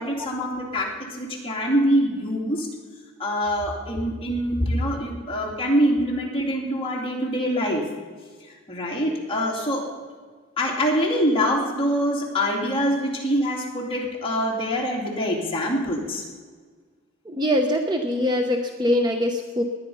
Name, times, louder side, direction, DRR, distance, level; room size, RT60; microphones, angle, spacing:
voice 1, 0.0-2.7 3.2-7.9 8.2-9.9 10.6-16.2, equal, 25° left, -2 dB, 2.9 m, -24 dB
voice 2, 17.2-19.6, left 1 dB, 20° right, 4 dB, 0.8 m, -23 dB
19.0 x 10.0 x 5.6 m, 1.5 s
head